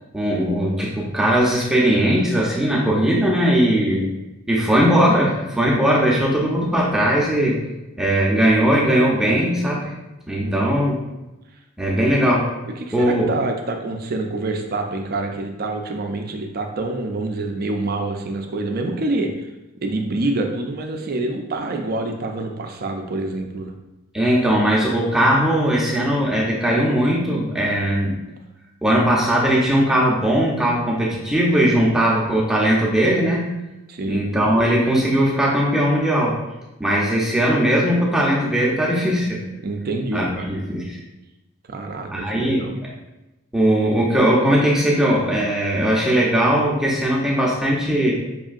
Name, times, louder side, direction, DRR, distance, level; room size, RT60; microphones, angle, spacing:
voice 1, 0.1-4.1 4.5-7.6 8.0-9.9 10.3-10.9 11.8-12.5 12.9-13.3 24.1-28.1 28.8-33.4 34.1-36.4 36.8-39.4 40.1-41.0 42.1-42.7 43.5-48.1, right 1 dB, ahead, -5 dB, 0.6 m, -19 dB
voice 2, 3.7-4.1 10.4-10.8 12.7-19.5 19.8-23.7 31.9-32.3 33.9-34.2 39.6-40.5 41.7-42.7, right 2 dB, 45° right, 4 dB, 0.4 m, -27 dB
5.4 x 2.7 x 2.4 m, 0.99 s
head